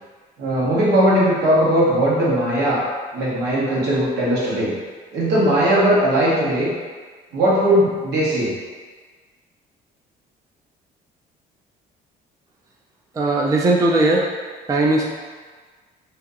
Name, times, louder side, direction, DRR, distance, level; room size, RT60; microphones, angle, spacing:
voice 1, 0.4-2.8 3.1-4.7 5.1-6.7 7.3-8.5, right 1 dB, 75° right, -7 dB, 1.3 m, -18 dB
voice 2, 13.2-14.3 14.7-15.0, right 2 dB, 20° right, -1 dB, 0.4 m, -18 dB
2.8 x 2.7 x 3.7 m, 1.5 s
cardioid pair, 110°, 17 cm